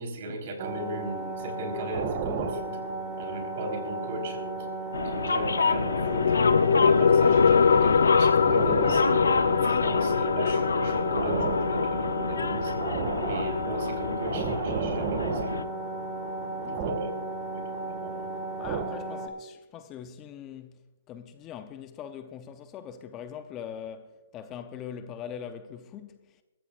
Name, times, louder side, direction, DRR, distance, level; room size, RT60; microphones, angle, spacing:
voice 1, 0.0-2.8 3.2-4.7 5.0-6.4 6.8-12.7 13.2-15.7 16.7-17.1 17.5-18.3, right 1 dB, 50° right, 4.1 m, -36 dB
sound 1, 0.6-19.3, right 3 dB, 30° right, 1.8 m, -33 dB
sound 2, 4.9-15.6, left 4 dB, 85° left, 0.8 m, -29 dB
sound 3, 5.4-16.4, left 6 dB, 70° left, 0.3 m, -25 dB
voice 2, 18.6-20.8 21.1-26.4, left 8 dB, 20° left, 0.7 m, -42 dB
21.0 x 15.0 x 2.5 m
hypercardioid pair, 145°, 0 cm